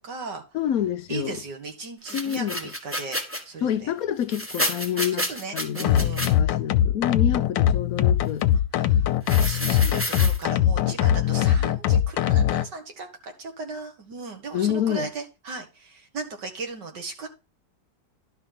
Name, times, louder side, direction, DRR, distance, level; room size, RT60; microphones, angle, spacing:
voice 1, 0.0-0.4 1.1-3.9 5.1-6.4 7.3-7.5 8.7-9.1 9.4-17.3, right 4 dB, 70° right, 2.5 m, -37 dB
voice 2, 0.5-1.4 2.1-2.6 3.6-5.2 5.5-8.5 9.8-9.9 10.8-11.0 14.5-15.1, left 10 dB, 65° left, 1.0 m, -27 dB
sound 1, 2.0-3.4 4.2-6.3 9.2-10.4, equal, 10° right, 1.2 m, -30 dB
sound 2, 5.8-12.7, left 10 dB, 85° left, 1.4 m, -21 dB
11.5 x 4.7 x 5.9 m
omnidirectional pair, 2.0 m